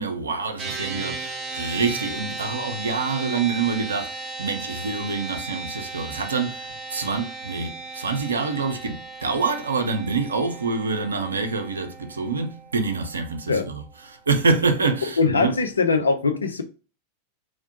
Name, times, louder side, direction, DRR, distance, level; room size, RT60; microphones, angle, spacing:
voice 1, 0.0-15.6, right 4 dB, 75° right, 0.5 m, -26 dB
sound 1, 0.6-14.1, right 3 dB, 25° right, 0.6 m, -36 dB
voice 2, 15.2-16.6, left 4 dB, 75° left, 0.5 m, -21 dB
3.1 x 2.1 x 2.7 m
figure-of-eight pair, 90°, 0 cm